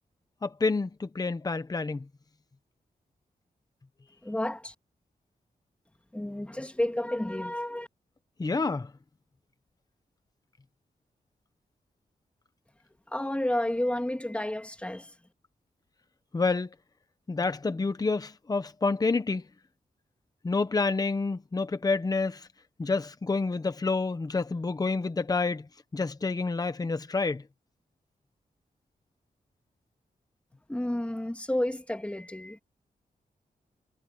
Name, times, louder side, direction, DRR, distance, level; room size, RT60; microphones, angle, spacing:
voice 1, 0.4-2.1 8.4-8.9 16.3-16.7 17.3-19.4 20.4-22.5 22.8-27.4, left 3 dB, 25° left, 1.0 m, -28 dB
voice 2, 4.2-4.7 6.1-7.9 13.1-15.1 30.7-32.6, left 1 dB, 10° left, 2.2 m, -31 dB
wide cardioid pair, 155°, 16 cm